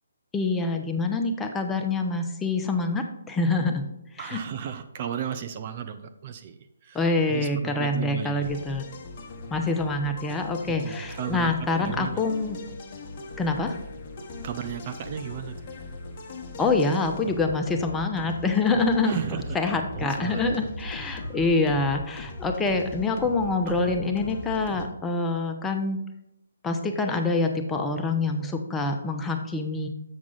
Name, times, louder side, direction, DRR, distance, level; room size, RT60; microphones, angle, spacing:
voice 1, 0.3-3.9 4.1-4.4 6.9-8.9 9.5-12.6 13.4-13.8 16.6-19.2 19.5-26.0 26.6-29.9, left 3 dB, 10° left, 3 dB, 0.7 m, -26 dB
voice 2, 4.2-8.5 10.7-12.2 14.4-15.7 19.0-20.7 21.0-21.4 23.7-24.0, right 9 dB, 40° right, 8 dB, 0.5 m, -35 dB
sound 1, 8.4-24.9, left 2 dB, 35° left, 1.0 m, -39 dB
7.3 x 6.0 x 3.9 m, 0.86 s
figure-of-eight pair, 145°, 0 cm